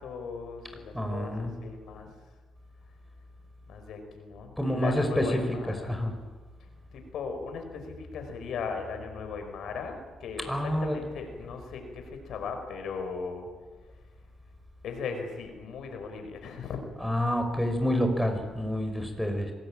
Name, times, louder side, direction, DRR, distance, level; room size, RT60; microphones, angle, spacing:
voice 1, 0.0-2.1 3.7-5.9 6.9-13.5 14.8-16.8, left 5 dB, 75° left, 6 dB, 4.9 m, -38 dB
voice 2, 0.9-1.5 4.6-6.1 10.5-11.1 17.0-19.5, equal, ahead, 6 dB, 5.3 m, -28 dB
26.0 x 19.5 x 8.9 m, 1.3 s
cardioid pair, 90°, 0 cm